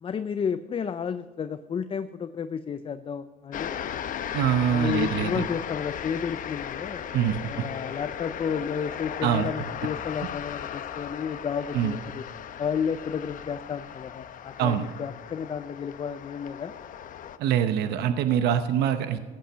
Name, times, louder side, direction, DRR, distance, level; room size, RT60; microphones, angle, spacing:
voice 1, 0.0-3.7 4.7-7.0 7.5-12.2 12.6-16.7, left 7 dB, 35° left, 11 dB, 0.5 m, -32 dB
sound 1, 3.5-17.4, left 9 dB, 55° left, 0.8 m, -36 dB
voice 2, 4.3-5.5 7.1-7.4 9.2-9.5 11.7-11.9 14.6-14.8 17.4-19.2, right 9 dB, 75° right, 9 dB, 0.8 m, -24 dB
15.0 x 8.8 x 5.6 m, 1.4 s
cardioid pair, 110°, 17 cm